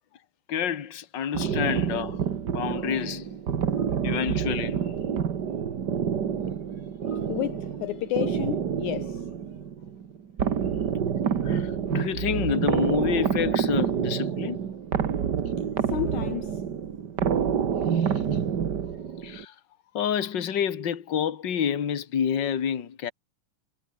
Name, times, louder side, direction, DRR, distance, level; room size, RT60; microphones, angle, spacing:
voice 1, 0.5-2.2 2.5-3.3 4.0-4.8 7.1-7.2 11.4-14.6 17.9-18.1 19.2-19.5 19.9-23.1, left 8 dB, 40° left, 2.2 m, -28 dB
sound 1, 1.3-19.4, right 7 dB, 45° right, 1.4 m, -28 dB
voice 2, 7.3-9.2 15.9-16.6, left 15 dB, 75° left, 2.1 m, -31 dB
omnidirectional pair, 3.8 m